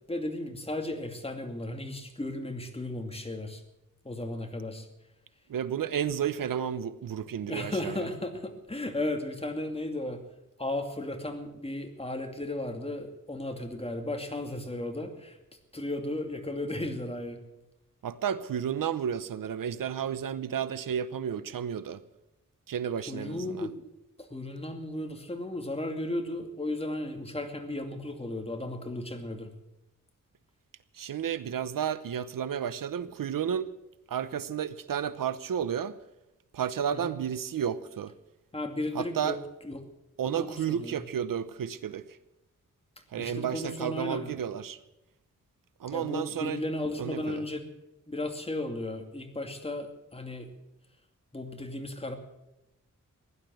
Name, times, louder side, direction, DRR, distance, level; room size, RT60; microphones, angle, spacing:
voice 1, 0.1-3.6 4.0-4.9 7.5-10.2 10.6-15.4 15.7-17.4 23.1-23.9 24.2-29.5 36.9-37.1 38.5-39.4 39.6-39.8 40.2-41.0 43.2-44.4 45.9-47.7 48.1-50.5 51.3-52.1, left 1 dB, 20° left, 5 dB, 2.5 m, -35 dB
voice 2, 5.5-8.0 18.0-22.0 22.7-23.7 31.0-33.7 34.1-35.9 36.5-38.1 38.9-39.4 40.2-42.0 43.1-44.8 45.8-46.6 47.0-47.4, right 8 dB, 80° right, 15 dB, 0.8 m, -32 dB
16.5 x 11.5 x 7.7 m, 0.92 s
wide cardioid pair, 85°, 32 cm